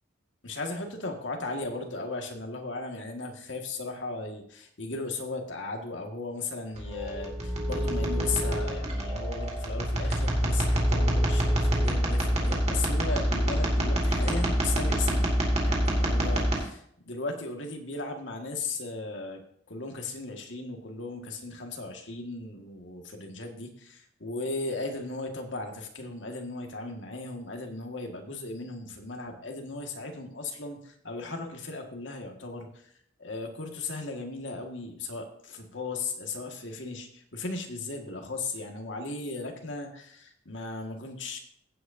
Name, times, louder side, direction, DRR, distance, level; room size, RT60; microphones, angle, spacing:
voice 1, 0.4-15.3 15.6-19.4 19.7-32.9 33.2-41.4, left 3 dB, 85° left, 3 dB, 1.8 m, -36 dB
sound 1, 6.7-16.6, equal, 35° right, 2.4 m, -26 dB
15.5 x 8.2 x 2.7 m, 0.67 s
head